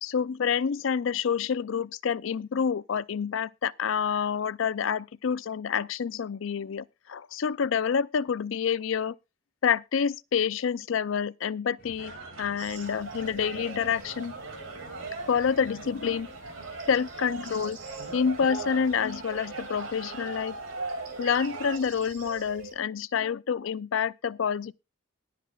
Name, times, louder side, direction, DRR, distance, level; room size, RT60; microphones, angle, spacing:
voice 1, 0.0-9.2 9.6-14.3 15.3-16.3 16.9-17.8 18.1-20.6 21.2-24.7, left 7 dB, 75° left, 0.4 m, -28 dB
sound 1, 11.8-19.2, left 1 dB, 45° left, 3.5 m, -54 dB
sound 2, 12.0-21.8, right 3 dB, 80° right, 2.4 m, -39 dB
sound 3, 12.6-22.7, right 4 dB, 45° right, 4.2 m, -48 dB
21.0 x 7.6 x 2.3 m
head